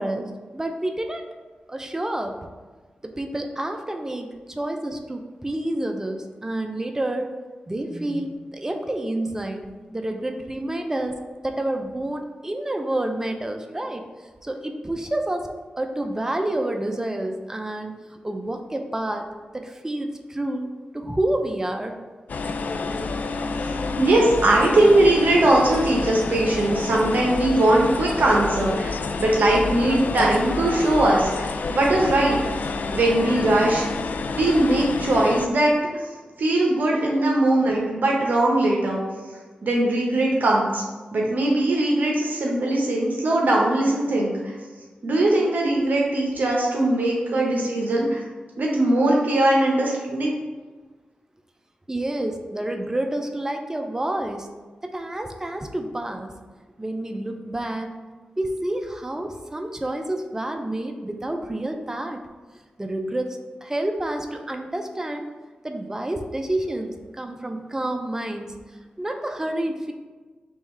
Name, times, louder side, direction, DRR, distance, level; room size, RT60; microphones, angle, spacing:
voice 1, 0.0-1.3 1.7-2.3 3.0-7.3 7.7-9.6 9.9-11.1 11.4-14.1 14.4-15.5 15.8-19.3 19.5-21.9 25.2-25.3 51.9-54.5 54.8-56.3 56.8-57.9 58.4-62.2 62.8-65.3 65.6-68.5 69.0-69.9, right 1 dB, 15° right, 4 dB, 0.5 m, -29 dB
sound 1, 22.3-35.5, left 4 dB, 65° left, 0.3 m, -29 dB
voice 2, 24.0-28.9 29.2-32.4 32.9-33.8 34.3-35.7 36.4-39.0 39.6-40.8 41.1-44.5 45.0-48.2 48.6-50.3, right 1 dB, 70° right, -2 dB, 0.8 m, -20 dB
3.6 x 3.1 x 4.3 m, 1.3 s
cardioid pair, 60°, 3 cm